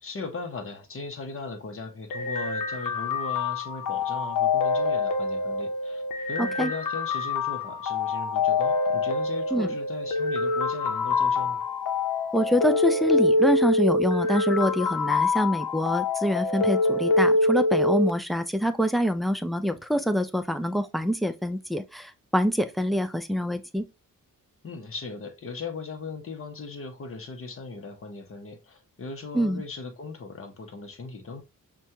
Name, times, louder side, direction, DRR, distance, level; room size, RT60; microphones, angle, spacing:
voice 1, 0.0-11.6 24.6-31.4, left 4 dB, 45° left, 0.8 m, -38 dB
sound 1, 2.1-18.1, left 3 dB, 80° left, 0.8 m, -25 dB
voice 2, 6.4-6.7 9.5-9.7 12.3-23.8 29.3-29.6, equal, ahead, 0.3 m, -25 dB
6.0 x 2.3 x 2.7 m
wide cardioid pair, 155°, 32 cm